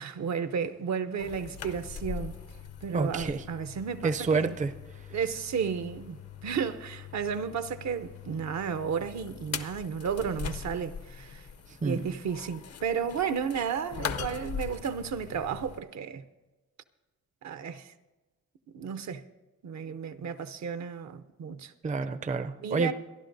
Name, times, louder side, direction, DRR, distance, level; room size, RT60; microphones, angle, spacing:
voice 1, 0.0-2.4 2.8-4.6 5.1-11.5 11.8-16.2 17.4-17.9 18.7-19.2 19.6-21.7 22.6-22.9, right 6 dB, 65° right, 0.7 m, -33 dB
sound 1, 1.2-15.8, left 7 dB, 55° left, 0.7 m, -41 dB
voice 2, 2.9-3.4 4.0-4.7 11.8-12.1 21.8-22.9, right 4 dB, 25° right, 0.5 m, -28 dB
27.5 x 11.0 x 2.6 m
cardioid pair, 105°, 30 cm